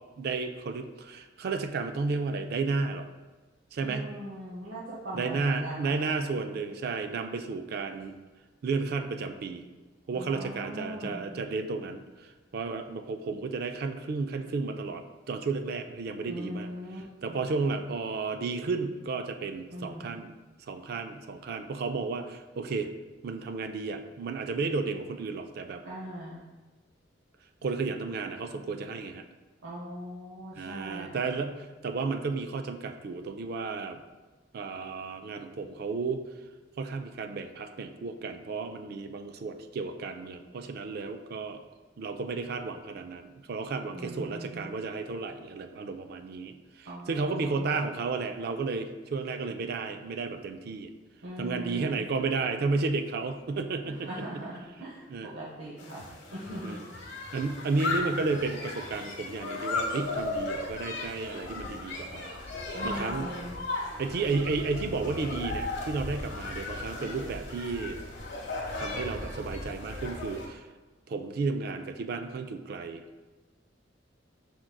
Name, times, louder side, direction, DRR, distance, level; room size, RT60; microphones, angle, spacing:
voice 1, 0.2-3.1 3.7-4.1 5.1-8.1 8.6-9.7 10.1-20.3 20.7-22.9 23.2-25.8 27.6-29.2 30.6-34.0 34.5-36.2 36.8-41.6 42.0-50.9 51.4-54.4 55.1-55.3 56.6-56.8 57.3-62.3 62.8-63.3 64.0-68.0 68.8-70.6 71.1-73.0, right 4 dB, 55° right, 8 dB, 0.3 m, -33 dB
voice 2, 3.8-6.0 10.1-11.3 16.3-17.0 17.3-17.4 19.7-20.2 25.8-26.4 29.6-31.3 43.9-44.7 46.8-47.7 51.2-52.0 53.8-56.8 62.7-63.6, equal, 80° right, -6 dB, 0.8 m, -40 dB
sound 1, 55.8-70.5, left 2 dB, 70° left, 0.9 m, -36 dB
5.8 x 3.7 x 2.3 m, 1.2 s
head